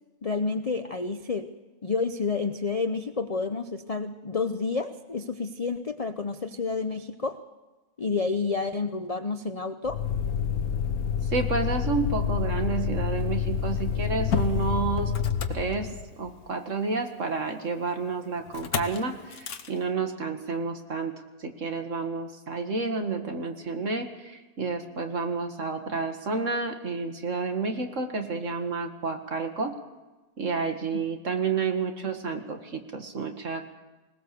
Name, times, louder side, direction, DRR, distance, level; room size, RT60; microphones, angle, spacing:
voice 1, 0.2-1.5 1.8-7.4 8.0-10.0 30.9-31.1, left 4 dB, 40° left, 9 dB, 0.5 m, -29 dB
Motor vehicle (road), 9.9-16.3 18.5-19.0 19.3-19.7, left 7 dB, 75° left, 1.6 m, -28 dB
voice 2, 11.3-15.1 15.5-15.9 16.2-21.1 21.4-29.7 30.4-33.7, right 4 dB, 55° right, 5 dB, 2.1 m, -30 dB
20.5 x 19.5 x 6.9 m, 1.2 s
omnidirectional pair, 1.6 m